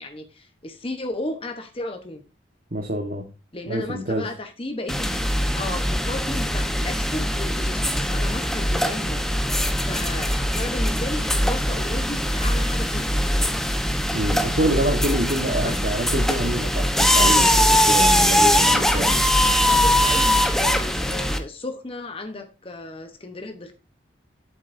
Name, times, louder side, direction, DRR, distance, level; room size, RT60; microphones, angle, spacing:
voice 1, 0.0-2.2 3.5-5.2 5.6-13.2 15.6-15.8 19.6-23.7, left 2 dB, 30° left, 1.0 m, -34 dB
voice 2, 2.7-3.3 3.7-4.3 14.1-19.2, right 1 dB, 50° right, 1.4 m, -26 dB
sound 1, 4.9-21.4, equal, ahead, 0.9 m, -21 dB
11.5 x 8.0 x 2.6 m
head